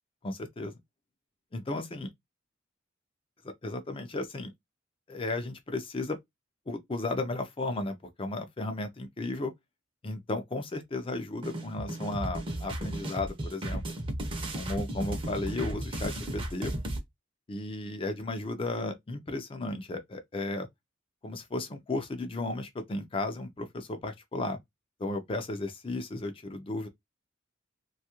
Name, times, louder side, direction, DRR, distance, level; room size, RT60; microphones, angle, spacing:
voice 1, 0.2-0.7 1.5-2.1 3.4-4.5 5.1-6.2 6.7-9.5 10.0-13.8 14.5-16.7 17.5-20.7 21.2-24.6 25.0-26.9, left 2 dB, 25° left, 0.4 m, -34 dB
sound 1, 11.4-17.0, right 1 dB, 25° right, 0.6 m, -34 dB
2.7 x 2.3 x 2.9 m
head